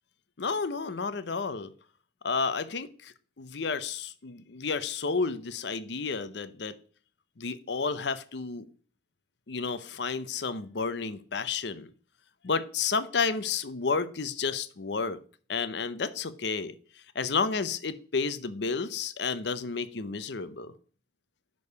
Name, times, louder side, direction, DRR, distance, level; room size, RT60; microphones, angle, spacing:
voice 1, 0.4-1.7 2.2-6.7 7.4-8.7 9.5-11.9 12.4-15.2 15.5-16.7 17.1-20.7, left 4 dB, 65° left, 13 dB, 0.7 m, -31 dB
6.3 x 5.3 x 6.5 m, 0.43 s
head